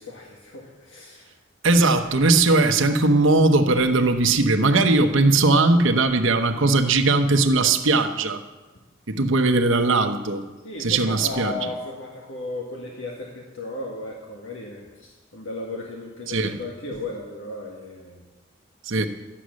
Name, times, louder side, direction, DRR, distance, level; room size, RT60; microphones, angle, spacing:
voice 1, 0.0-1.3 1.8-2.0 10.6-18.2, left 2 dB, 80° left, -1 dB, 1.8 m, -35 dB
voice 2, 1.6-8.4 9.1-10.4 10.8-11.5 16.3-16.6 18.8-19.1, right 3 dB, 80° right, 5 dB, 1.0 m, -19 dB
13.0 x 10.0 x 6.4 m, 1.2 s
head